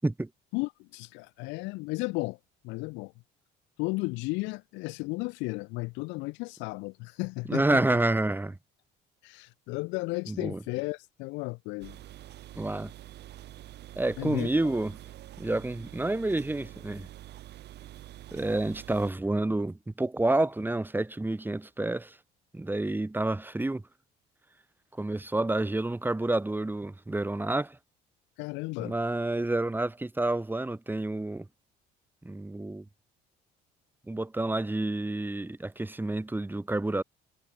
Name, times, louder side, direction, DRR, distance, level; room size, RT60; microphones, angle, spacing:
voice 1, 0.5-2.4 2.6-3.1 3.8-7.8 9.2-12.0 14.2-14.7 28.4-28.9, left 25 dB, 80° left, 0.6 m, -34 dB
voice 2, 7.5-8.6 10.3-10.6 12.5-12.9 13.9-15.0 15.4-17.1 18.3-22.2 22.5-23.8 25.0-27.8 28.8-31.5 32.2-32.8 34.1-37.0, right 2 dB, 10° right, 1.6 m, -29 dB
sound 1, 11.8-19.1, right 13 dB, 65° right, 2.7 m, -46 dB
supercardioid pair, 85°, 19 cm